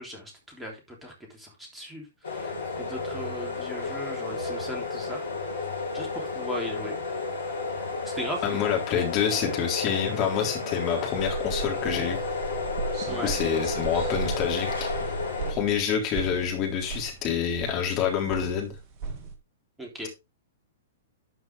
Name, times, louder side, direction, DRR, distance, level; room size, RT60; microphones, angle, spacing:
voice 1, 0.0-2.5 2.8-5.2 5.6-5.7 5.9-7.0 8.0-8.6 13.1-13.4 19.8-20.1, equal, 5° right, -1 dB, 3.4 m, -38 dB
sound 1, 2.2-15.5, left 4 dB, 70° left, 5.5 m, -32 dB
voice 2, 8.4-12.2 13.2-14.9 15.5-18.7, left 8 dB, 35° left, 1 dB, 3.7 m, -27 dB
sound 2, 11.1-19.4, right 5 dB, 35° right, 2.0 m, -36 dB
12.0 x 6.0 x 3.4 m, 0.24 s
figure-of-eight pair, 110°, 0 cm